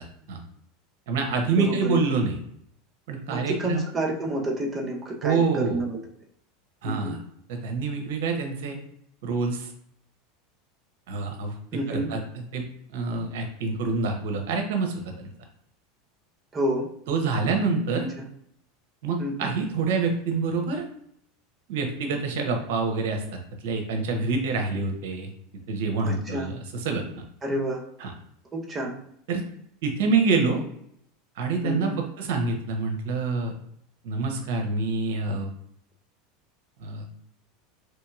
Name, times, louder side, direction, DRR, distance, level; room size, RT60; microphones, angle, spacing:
voice 1, 1.1-2.4 3.1-3.8 5.2-5.8 6.8-7.2 7.5-8.8 9.2-9.7 11.1-11.5 11.9-12.7 12.9-15.3 17.1-18.1 19.0-20.8 21.7-23.2 23.6-25.3 25.7-27.1 28.0-28.1 29.3-29.4 29.8-30.6 31.4-33.5 34.0-35.5 36.8-37.0, right 4 dB, 70° right, 3 dB, 0.7 m, -26 dB
voice 2, 1.6-2.0 3.3-6.0 6.8-7.1 11.7-12.1 16.5-16.9 18.2-18.3 19.2-19.5 26.0-26.5 27.4-27.8 28.5-29.0 31.6-32.0, right 1 dB, 25° right, 0 dB, 0.8 m, -29 dB
3.0 x 2.8 x 2.4 m, 0.70 s
hypercardioid pair, 90°, 0 cm